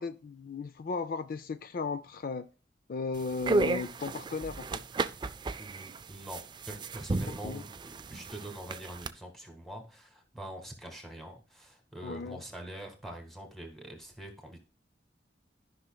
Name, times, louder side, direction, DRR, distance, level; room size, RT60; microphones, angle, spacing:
voice 1, 0.0-2.5 2.9-4.8 7.4-7.6 12.0-12.4, left 4 dB, 55° left, 0.4 m, -36 dB
sound 1, 3.2-9.1, right 3 dB, 25° right, 0.4 m, -34 dB
voice 2, 5.6-14.6, right 1 dB, ahead, 1.8 m, -44 dB
13.0 x 5.7 x 2.3 m
head